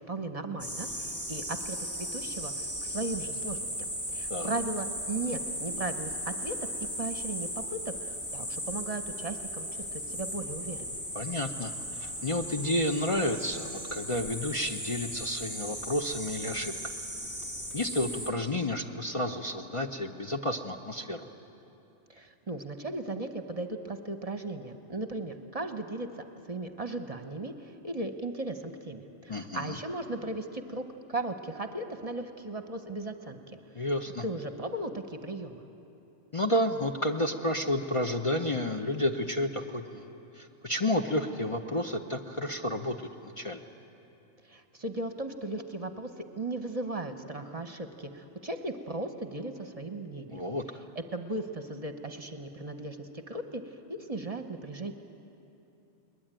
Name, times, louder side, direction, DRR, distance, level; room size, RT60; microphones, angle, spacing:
voice 1, 0.1-6.6 7.0-11.0 22.1-26.1 26.5-30.8 31.1-33.8 34.2-35.6 44.4-50.4 51.0-54.9, right 2 dB, 35° right, 6 dB, 1.0 m, -37 dB
sound 1, 0.6-18.3, equal, 15° left, 1.8 m, -37 dB
voice 2, 11.1-16.9 17.7-21.3 29.3-29.8 33.7-34.2 36.3-40.1 40.3-43.0 43.2-43.6 50.3-50.6, left 1 dB, 30° left, 3 dB, 0.8 m, -31 dB
22.0 x 20.5 x 8.9 m, 2.9 s
omnidirectional pair, 1.2 m